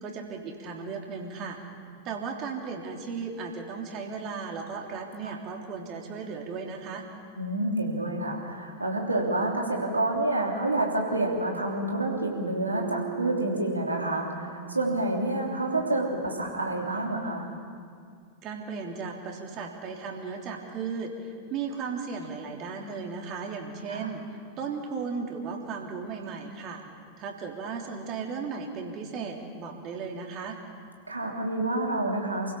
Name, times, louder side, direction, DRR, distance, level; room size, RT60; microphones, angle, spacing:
voice 1, 0.0-1.6 2.0-7.1 18.4-24.2 24.6-26.8 27.2-30.6, right 5 dB, 35° right, 1 dB, 3.3 m, -36 dB
voice 2, 7.4-17.5 23.9-24.1 31.1-32.5, right 2 dB, 80° right, 0 dB, 3.3 m, -28 dB
Bass guitar, 12.7-16.8, right 10 dB, 55° right, 4.3 m, -41 dB
29.0 x 16.5 x 7.2 m, 2.2 s
figure-of-eight pair, 90°, 0 cm